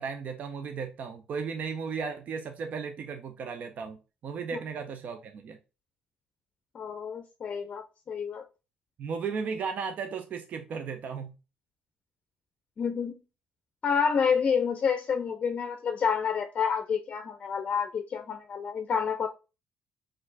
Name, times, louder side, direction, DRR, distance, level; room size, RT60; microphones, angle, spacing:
voice 1, 0.0-5.6 9.0-11.4, right 5 dB, 55° right, 6 dB, 0.5 m, -35 dB
voice 2, 6.7-8.4 12.8-13.1 13.8-19.3, left 6 dB, 45° left, 7 dB, 0.5 m, -29 dB
4.4 x 2.5 x 3.9 m, 0.30 s
supercardioid pair, 75°, 3 cm